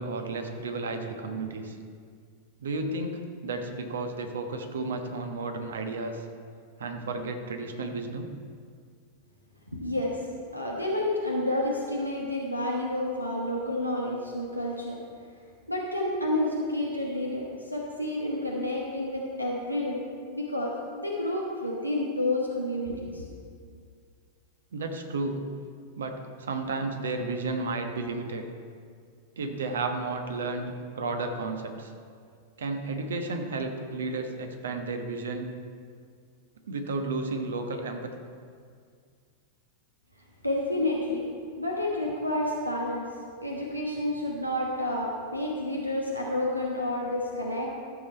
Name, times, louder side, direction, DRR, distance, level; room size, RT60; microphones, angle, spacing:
voice 1, 0.0-1.8 2.6-6.2 6.8-8.3 24.7-25.4 26.0-28.4 29.4-31.9 32.6-35.5 36.7-38.1, right 3 dB, 65° right, 5 dB, 1.1 m, -32 dB
voice 2, 9.7-10.2 10.5-15.0 15.7-20.0 20.3-23.3 40.4-41.3 41.6-43.1 43.4-47.7, left 1 dB, 90° right, -2 dB, 1.3 m, -30 dB
13.5 x 7.1 x 4.4 m, 2.1 s
figure-of-eight pair, 90°, 0 cm